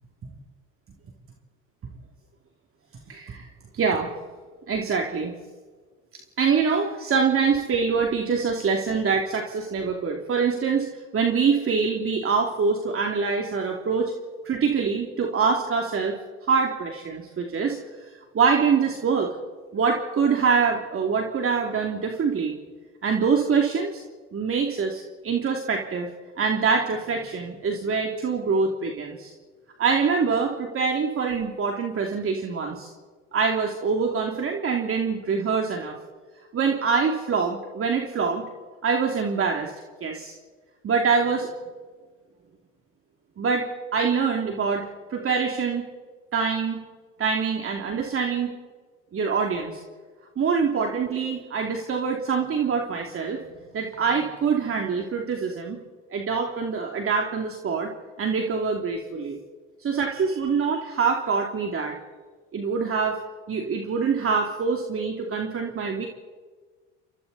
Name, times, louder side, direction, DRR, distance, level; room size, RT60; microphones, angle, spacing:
voice 1, 3.1-4.1 4.7-5.3 6.4-14.1 14.4-16.2 16.5-17.8 18.3-19.3 19.7-22.5 23.0-24.0 24.3-26.1 26.4-29.3 29.8-32.9 33.3-35.9 36.5-38.5 38.8-39.7 40.0-40.3 40.8-41.5 43.4-43.7 43.9-45.9 46.3-46.8 47.2-48.5 49.1-49.8 50.4-53.4 53.7-55.8 56.1-57.9 58.2-59.4 59.8-62.0 62.5-63.2 63.5-66.1, right 5 dB, 40° right, 1 dB, 2.9 m, -24 dB
29.5 x 25.5 x 4.2 m, 1.4 s
supercardioid pair, 80°, 34 cm